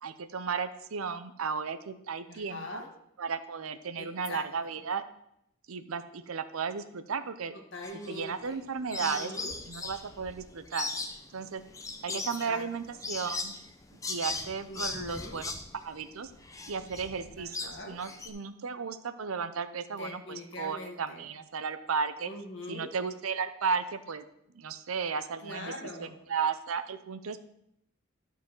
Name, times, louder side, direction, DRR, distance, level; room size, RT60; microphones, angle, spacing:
voice 1, 0.0-2.8 3.2-5.0 5.7-7.5 8.1-9.3 9.7-10.9 11.3-11.6 12.0-13.5 13.9-15.5 15.8-16.3 16.7-22.3 22.7-24.2 24.5-25.7 26.0-27.4, right 5 dB, 75° right, 11 dB, 0.6 m, -34 dB
voice 2, 2.3-2.9 4.0-4.8 7.7-8.6 9.0-9.5 12.1-12.6 14.7-15.4 17.4-18.0 20.0-21.3 22.3-22.9 25.4-26.1, left 1 dB, 55° left, 3 dB, 1.5 m, -43 dB
sound 1, 7.8-8.6 8.9-18.3, left 3 dB, 15° left, 0.6 m, -38 dB
12.0 x 4.1 x 6.0 m, 0.78 s
head